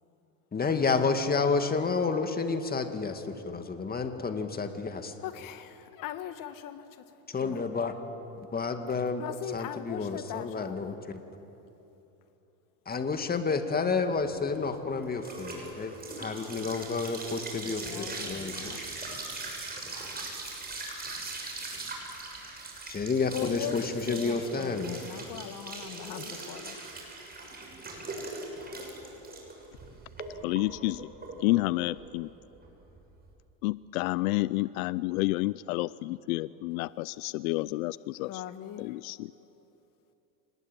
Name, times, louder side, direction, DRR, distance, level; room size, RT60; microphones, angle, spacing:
voice 1, 0.5-5.1 7.3-7.9 8.5-9.2 9.5-11.2 12.9-15.9 16.2-18.9 22.9-25.0, left 4 dB, 20° left, 7 dB, 2.2 m, -30 dB
voice 2, 5.2-7.0 7.4-7.6 9.2-11.0 17.6-18.8 23.3-26.8 38.3-38.9, left 10 dB, 50° left, 10 dB, 1.8 m, -40 dB
sound 1, 14.2-33.3, right 3 dB, 20° right, 7.0 m, -40 dB
voice 3, 30.4-31.1 31.4-32.3 33.6-38.4 38.8-39.3, left 20 dB, 85° left, 19 dB, 0.5 m, -30 dB
27.0 x 20.0 x 9.1 m, 3.0 s
supercardioid pair, 105°, 41 cm